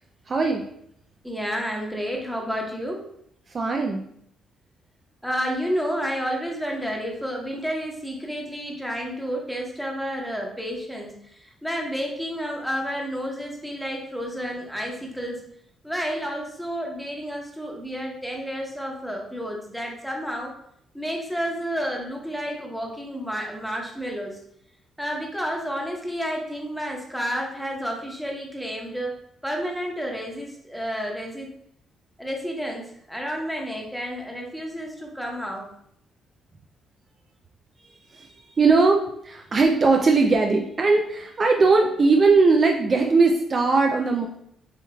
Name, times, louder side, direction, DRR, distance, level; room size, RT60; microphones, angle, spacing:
voice 1, 0.3-0.6 3.5-4.0 38.1-44.3, right 3 dB, 40° right, 2 dB, 0.4 m, -19 dB
voice 2, 1.2-3.0 5.2-15.4 15.8-20.5 20.9-24.4 25.0-31.5 32.2-35.7, equal, ahead, 0 dB, 1.1 m, -30 dB
6.8 x 3.1 x 2.3 m, 0.71 s
cardioid pair, 90°, 0 cm